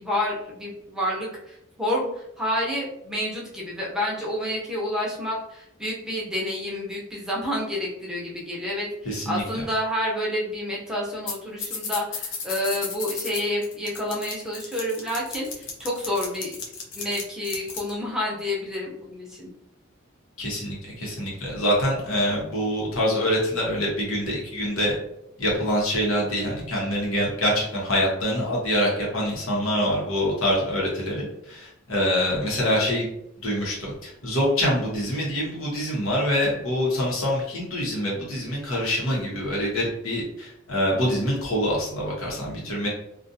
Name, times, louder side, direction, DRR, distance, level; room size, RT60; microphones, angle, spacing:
voice 1, 0.0-16.5 17.0-19.5, left 1 dB, 5° right, -5 dB, 0.6 m, -29 dB
voice 2, 9.0-9.4 20.4-25.0 25.4-33.1 33.4-42.9, equal, 90° left, -3 dB, 1.0 m, -25 dB
sound 1, 11.3-11.4 11.6-17.9, left 5 dB, 60° left, 0.6 m, -33 dB
2.5 x 2.4 x 2.6 m, 0.80 s
head